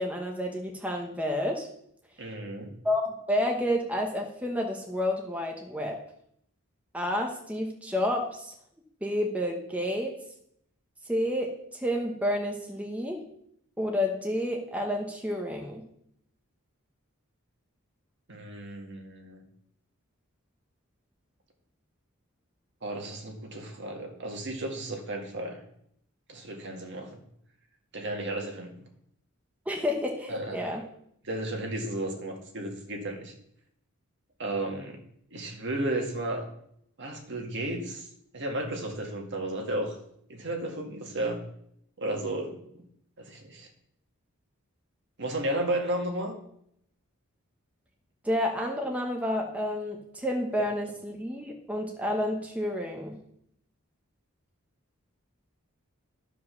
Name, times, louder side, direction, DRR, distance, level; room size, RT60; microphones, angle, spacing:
voice 1, 0.0-1.7 2.8-3.0 3.3-6.0 6.9-8.5 9.0-10.1 11.1-13.2 13.8-15.8 29.7-30.8 48.2-53.2, left 1 dB, 5° right, 1 dB, 1.0 m, -30 dB
voice 2, 2.2-2.7 18.3-19.4 22.8-25.6 26.3-27.2 27.9-28.7 30.3-30.6 31.2-33.3 34.4-35.0 35.3-36.4 37.0-38.1 38.3-40.0 40.3-41.4 42.0-42.8 43.2-43.7 45.2-46.4, right 1 dB, 55° right, 2 dB, 1.9 m, -33 dB
12.5 x 5.0 x 6.3 m, 0.71 s
head